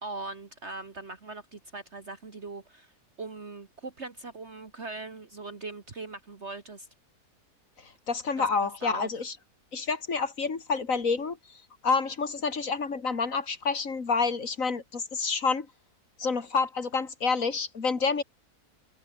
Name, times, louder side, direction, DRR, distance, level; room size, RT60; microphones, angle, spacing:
voice 1, 0.0-2.9 3.2-6.9 8.4-9.1, right 3 dB, 45° right, 2.3 m, -40 dB
voice 2, 7.8-9.3 9.7-11.4 11.8-15.7 16.2-18.2, left 4 dB, 60° left, 2.6 m, -28 dB
open air
omnidirectional pair, 1.6 m